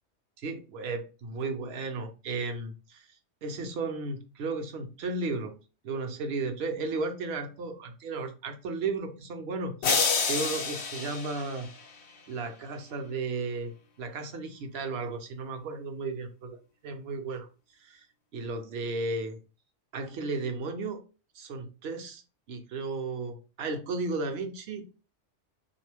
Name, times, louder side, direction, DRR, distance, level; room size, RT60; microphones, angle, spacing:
voice 1, 0.4-3.1 3.4-5.6 5.8-11.7 12.3-13.7 14.0-16.6 16.8-17.5 17.8-18.0 18.3-19.4 19.9-21.0 21.3-22.2 22.5-24.9, right 3 dB, 65° right, 6 dB, 0.8 m, -34 dB
sound 1, 9.8-12.2, left 5 dB, 65° left, 0.9 m, -29 dB
2.9 x 2.4 x 3.3 m, 0.33 s
omnidirectional pair, 1.2 m